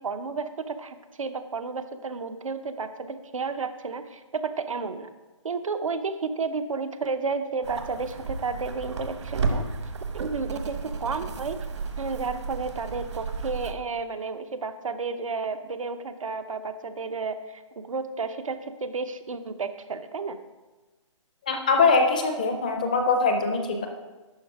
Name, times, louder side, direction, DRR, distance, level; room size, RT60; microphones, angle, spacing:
voice 1, 0.0-5.1 5.4-9.7 10.1-11.6 12.0-20.4, right 4 dB, 90° right, 9 dB, 0.9 m, -32 dB
sound 1, 7.6-13.7, right 4 dB, 60° right, 1.0 m, -33 dB
voice 2, 21.5-23.9, left 4 dB, 15° left, 5 dB, 0.4 m, -22 dB
11.5 x 4.4 x 4.7 m, 1.2 s
hypercardioid pair, 170°, 16 cm